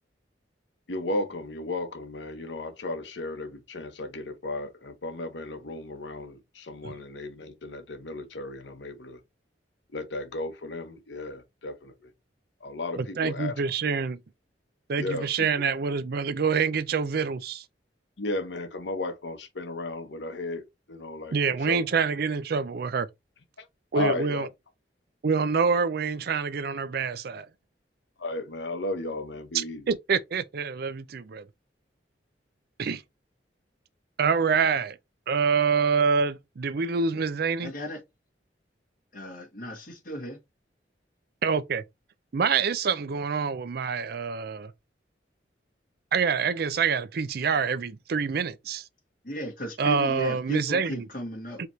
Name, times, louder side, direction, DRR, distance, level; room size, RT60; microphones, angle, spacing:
voice 1, 0.9-9.2 9.9-12.1 12.6-13.5 15.0-15.7 18.2-21.8 23.6-23.7 23.9-24.5 28.2-29.8, left 2 dB, 90° left, 0.9 m, -34 dB
voice 2, 13.0-14.2 14.9-17.6 21.3-23.1 23.9-24.5 25.2-27.5 29.5-31.5 32.8-33.0 34.2-35.0 35.3-37.7 41.4-41.8 42.3-44.7 46.1-48.8 49.8-51.1 51.6-51.7, right 5 dB, 60° right, 0.5 m, -26 dB
voice 3, 37.6-38.0 39.1-40.4 49.2-51.6, equal, 50° left, 2.1 m, -35 dB
4.9 x 2.9 x 3.1 m
head